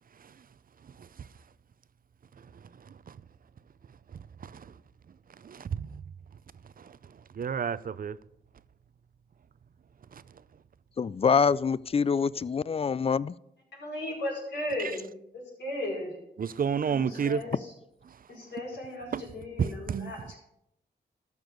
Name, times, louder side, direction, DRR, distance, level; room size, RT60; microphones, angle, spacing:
voice 1, 5.4-6.0 7.4-8.2 16.4-17.4 19.1-19.2 19.6-20.1, right 7 dB, 55° right, 0.5 m, -30 dB
voice 2, 11.0-13.3, left 6 dB, 35° left, 0.4 m, -25 dB
voice 3, 13.7-15.1 15.3-16.2 16.8-17.7 18.3-20.4, left 1 dB, 85° left, 4.8 m, -36 dB
13.5 x 6.1 x 5.3 m
cardioid pair, 60°, 18 cm